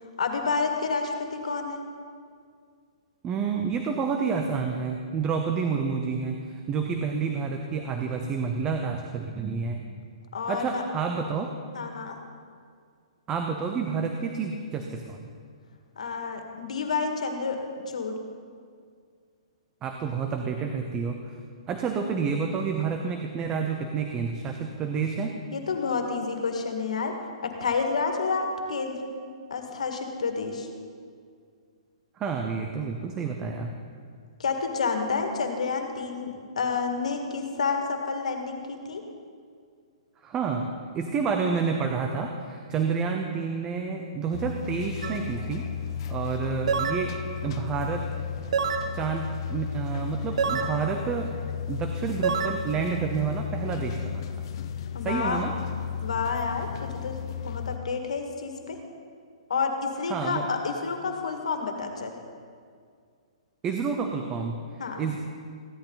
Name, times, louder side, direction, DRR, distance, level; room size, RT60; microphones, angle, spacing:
voice 1, 0.2-1.8 10.3-10.8 11.7-12.2 16.0-18.2 25.5-27.2 27.4-29.1 29.5-30.7 34.4-39.0 54.9-55.4 56.0-57.2 57.4-58.8 59.5-62.1 64.8-65.0, left 4 dB, 90° left, 4 dB, 1.9 m, -29 dB
voice 2, 3.2-9.8 10.5-11.5 13.3-15.3 19.8-21.4 21.7-25.3 32.2-33.7 40.2-40.7 40.9-45.7 46.1-48.1 48.9-51.3 51.7-54.3 55.0-55.5 60.1-60.5 63.6-65.2, right 5 dB, 20° right, 4 dB, 0.7 m, -29 dB
sound 1, 44.3-57.8, left 8 dB, 45° left, 0.7 m, -34 dB
sound 2, 45.0-45.2 46.7-47.0 48.5-48.9 50.4-50.7 52.2-52.5, right 6 dB, 70° right, 1.2 m, -26 dB
15.5 x 11.5 x 4.0 m, 2.1 s
hypercardioid pair, 160°, 4 cm